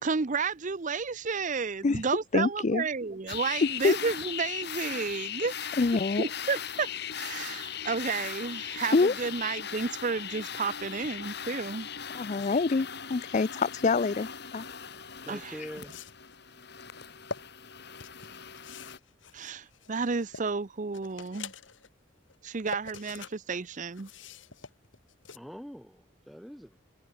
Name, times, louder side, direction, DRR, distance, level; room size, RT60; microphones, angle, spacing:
voice 1, 0.0-5.8 6.2-6.9 7.1-11.9 15.3-15.5 19.3-21.5 22.4-24.1, right 5 dB, 40° right, 0.6 m, -32 dB
voice 2, 2.3-2.8 3.8-4.0 5.8-6.2 8.9-9.1 12.1-14.6, left 4 dB, 40° left, 0.4 m, -26 dB
sound 1, 3.3-19.0, left 8 dB, 60° left, 3.9 m, -39 dB
sound 2, 15.0-15.1 15.7-16.4 17.0-17.4 18.0-20.5 20.9-21.9 22.3-23.3 23.6-25.4, left 5 dB, 75° left, 1.8 m, -44 dB
voice 3, 15.2-16.0 25.3-26.8, equal, ahead, 2.6 m, -43 dB
head